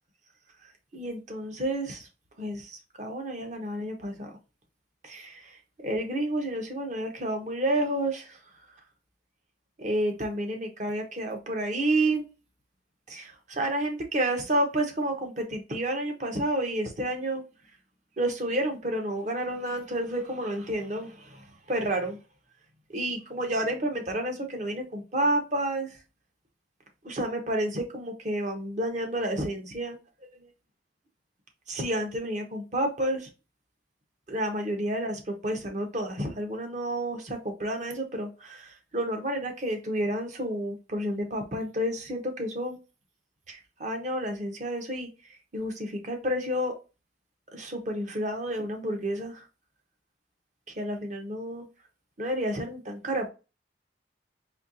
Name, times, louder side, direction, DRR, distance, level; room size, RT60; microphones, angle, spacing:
voice 1, 0.9-2.1 2.4-4.3 5.0-8.4 9.8-12.2 13.1-17.4 18.2-22.2 22.9-26.0 27.0-30.0 31.7-33.3 34.3-42.8 43.5-46.7 47.5-49.5 50.8-51.7 52.2-53.3, right 1 dB, 45° right, 3 dB, 0.9 m, -30 dB
4.3 x 2.8 x 2.6 m, 0.30 s
head